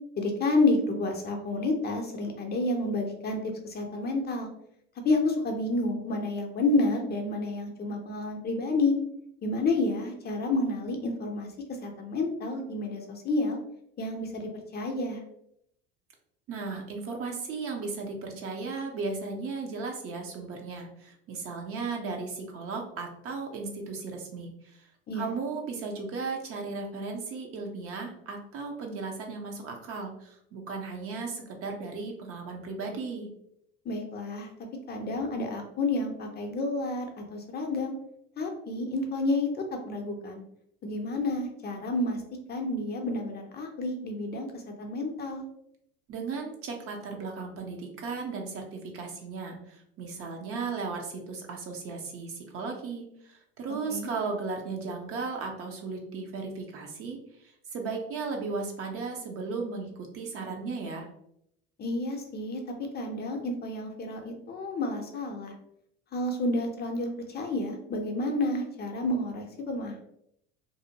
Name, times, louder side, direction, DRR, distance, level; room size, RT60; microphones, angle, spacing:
voice 1, 0.2-4.5 5.0-8.9 9.4-11.5 11.8-13.6 14.0-15.2 25.1-25.3 33.8-34.5 34.9-37.9 38.4-40.4 40.8-42.2 42.5-45.5 53.9-54.1 61.8-62.6 62.9-65.5 66.1-70.0, left 2 dB, 35° left, 2 dB, 0.6 m, -30 dB
voice 2, 16.5-24.5 25.1-33.3 46.1-57.2 57.7-61.1, right 4 dB, 50° right, 2 dB, 0.7 m, -36 dB
2.6 x 2.1 x 2.7 m, 0.74 s
hypercardioid pair, 85°, 30 cm